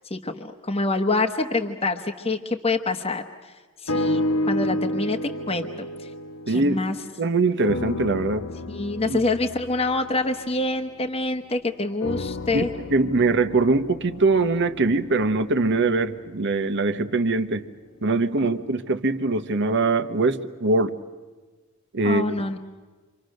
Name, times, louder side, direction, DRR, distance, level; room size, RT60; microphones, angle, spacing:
voice 1, 0.1-3.2 3.8-5.2 5.5-5.9 6.5-7.0 8.7-12.7 22.0-22.6, left 2 dB, 25° left, 3 dB, 1.1 m, -26 dB
sound 1, 3.9-7.2 7.6-11.4 12.0-16.2 16.9-17.0, left 1 dB, 65° left, 1.0 m, -31 dB
voice 2, 6.5-6.8 7.2-8.5 9.0-9.2 12.5-12.6 12.9-17.6 18.0-21.0 21.9-22.4, right 3 dB, 55° right, 10 dB, 1.1 m, -22 dB
28.5 x 25.5 x 6.5 m, 1.3 s
head